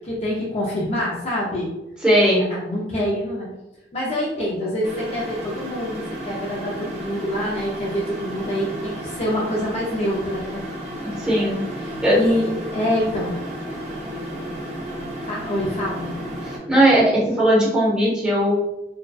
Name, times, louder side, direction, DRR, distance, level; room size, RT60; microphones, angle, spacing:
voice 1, 0.0-1.7 2.5-3.5 3.9-10.6 12.1-13.4 15.2-16.1, left 1 dB, 35° left, -4 dB, 0.4 m, -26 dB
voice 2, 2.0-2.5 11.0-11.6 12.0-12.2 16.4-18.5, right 1 dB, 5° right, -8 dB, 0.7 m, -18 dB
sound 1, 4.8-16.6, right 1 dB, 40° right, 0.5 m, -33 dB
2.5 x 2.1 x 2.2 m, 0.92 s
head